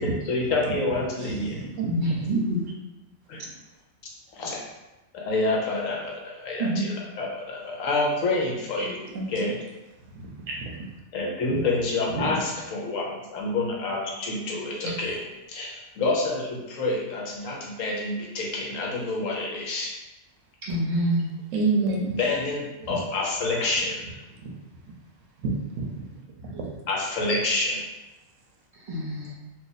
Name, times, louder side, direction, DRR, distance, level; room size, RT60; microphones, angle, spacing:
voice 1, 0.0-1.6 3.3-3.4 4.3-4.6 5.1-9.0 9.3-9.6 11.1-15.2 15.5-19.9 22.2-24.1 26.9-27.8, left 2 dB, 75° left, -2 dB, 1.1 m, -28 dB
voice 2, 1.2-2.3 8.8-9.5 10.2-10.8 11.5-11.6 12.1-12.4 14.8-14.9 21.5-22.2 22.8-23.0 24.4-24.5 25.4-26.0 26.4-26.8, right 3 dB, 75° right, 0 dB, 0.9 m, -30 dB
voice 3, 1.9-2.6 6.6-6.9 20.6-21.3 28.9-29.3, right 1 dB, 40° right, -7 dB, 1.1 m, -26 dB
2.7 x 2.5 x 3.9 m, 1.0 s
omnidirectional pair, 1.4 m